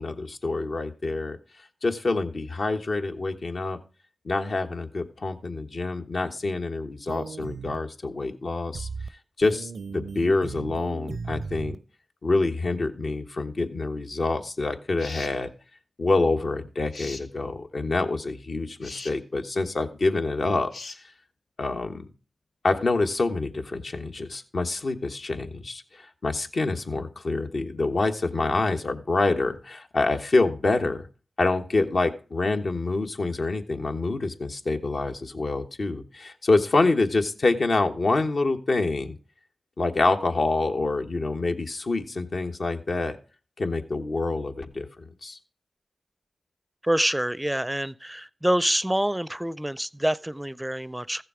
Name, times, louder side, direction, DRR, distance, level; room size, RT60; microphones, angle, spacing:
voice 1, 0.0-1.4 1.8-3.8 4.2-8.9 9.4-11.8 12.2-15.5 16.0-20.7 21.6-22.1 22.6-31.1 31.4-39.1 39.8-43.2 43.6-44.9 45.2-45.4, left 3 dB, 65° left, 1.3 m, -26 dB
sound 1, 7.1-7.7 8.7-9.1 9.4-11.7, right 4 dB, 80° right, 0.5 m, -36 dB
sound 2, 15.0-15.4 16.9-17.3 18.8-19.1 20.7-21.0, left 3 dB, 90° left, 1.1 m, -39 dB
voice 2, 46.8-51.2, right 1 dB, 10° right, 0.4 m, -26 dB
15.0 x 6.8 x 4.9 m
cardioid pair, 45°, 0 cm